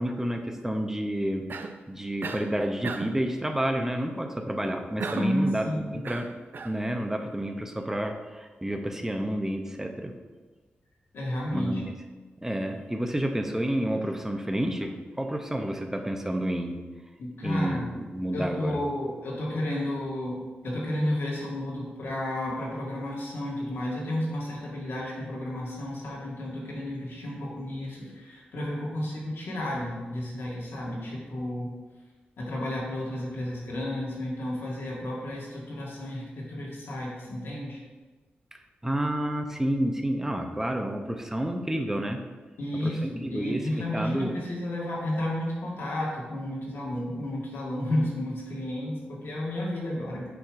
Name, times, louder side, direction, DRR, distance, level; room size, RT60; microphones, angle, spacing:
voice 1, 0.0-1.5 1.9-6.3 6.6-10.1 11.5-11.9 12.4-16.8 17.4-18.8 38.8-42.2 42.7-44.3, right 1 dB, 10° right, 4 dB, 0.7 m, -30 dB
Cough, 1.5-1.8 2.2-2.5 2.8-3.2 5.0-5.4 6.0-6.8, right 4 dB, 60° right, 0.4 m, -35 dB
voice 2, 5.1-6.1 11.1-11.8 17.2-17.9 18.3-20.4 20.6-31.7 32.4-37.8 42.6-50.3, left 1 dB, 80° left, -5 dB, 1.8 m, -32 dB
7.0 x 3.1 x 4.9 m, 1.3 s
cardioid pair, 60°, 4 cm